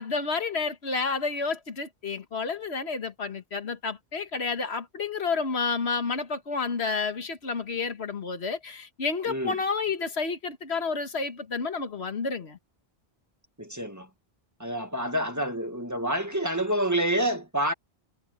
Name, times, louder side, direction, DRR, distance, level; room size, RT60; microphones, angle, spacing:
voice 1, 0.0-12.6, left 4 dB, 90° left, 1.8 m, -30 dB
voice 2, 13.6-14.1 14.6-17.7, right 1 dB, 15° right, 1.9 m, -28 dB
omnidirectional pair, 1.1 m